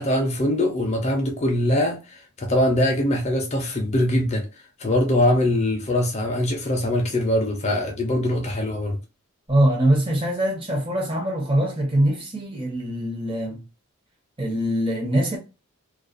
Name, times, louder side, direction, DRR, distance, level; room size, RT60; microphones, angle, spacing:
voice 1, 0.0-4.5 4.8-9.0, left 1 dB, 30° left, 0.4 m, -22 dB
voice 2, 9.5-13.6 14.4-15.4, right 1 dB, 25° right, 0.8 m, -23 dB
2.3 x 2.2 x 2.5 m
head